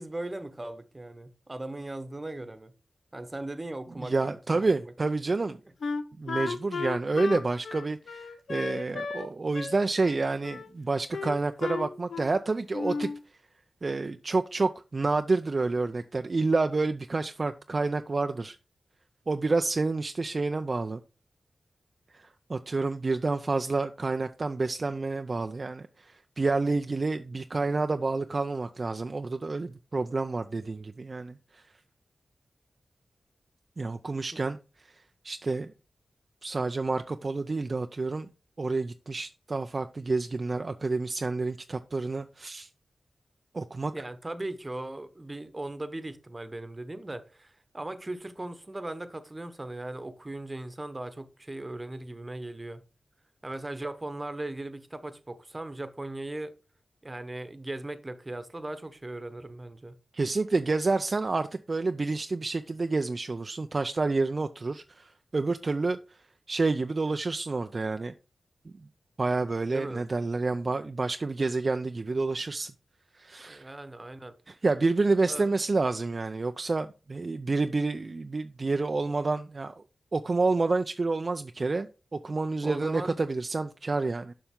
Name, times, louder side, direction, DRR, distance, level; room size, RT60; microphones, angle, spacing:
voice 1, 0.0-2.7 3.1-4.9 43.9-52.8 53.4-56.5 57.0-59.9 69.7-70.0 73.4-74.3 75.2-75.5 82.6-83.2, right 2 dB, 30° right, 1.0 m, -38 dB
voice 2, 4.0-5.6 6.2-13.1 13.8-18.6 19.3-21.0 22.1-31.6 33.8-35.7 36.4-38.3 38.6-42.7 43.5-43.9 60.1-66.2 66.5-68.1 69.2-72.7 73.1-73.7 74.5-79.8 80.1-81.9 82.2-84.3, right 3 dB, 50° right, 0.4 m, -29 dB
Wind instrument woodwind instrument, 5.8-9.3 9.5-10.7 11.1-12.4 12.7-13.2, left 4 dB, 80° left, 0.5 m, -34 dB
7.1 x 5.5 x 3.7 m
cardioid pair, 50°, 0 cm